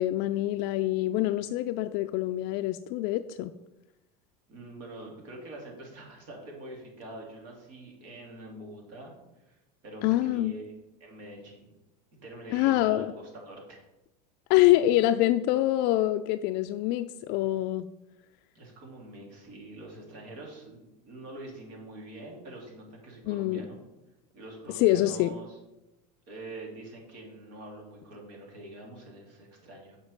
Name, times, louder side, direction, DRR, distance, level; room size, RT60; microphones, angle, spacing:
voice 1, 0.0-3.5 10.0-10.6 12.5-13.1 14.5-17.9 23.2-23.6 24.7-25.3, left 15 dB, 55° left, 8 dB, 0.4 m, -25 dB
voice 2, 4.5-10.6 11.0-11.7 12.2-13.8 18.5-23.8 24.3-25.6 26.3-30.0, right 1 dB, 65° right, -1 dB, 3.1 m, -45 dB
7.0 x 4.4 x 6.6 m, 0.96 s
hypercardioid pair, 100°, 21 cm